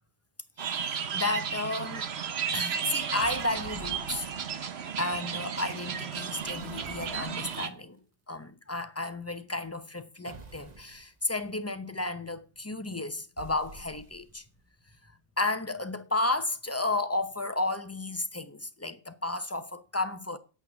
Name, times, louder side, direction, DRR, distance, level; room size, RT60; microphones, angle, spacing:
voice 1, 0.6-2.1 2.5-4.3 5.0-8.0 8.3-14.4 15.4-20.4, left 2 dB, 15° left, 0.8 m, -32 dB
sound 1, 0.6-7.7, right 7 dB, 85° right, 1.2 m, -34 dB
sound 2, 3.1-4.7 6.2-7.7 10.2-11.1 13.4-14.5, right 2 dB, 40° right, 1.2 m, -49 dB
9.0 x 8.0 x 6.1 m
omnidirectional pair, 1.0 m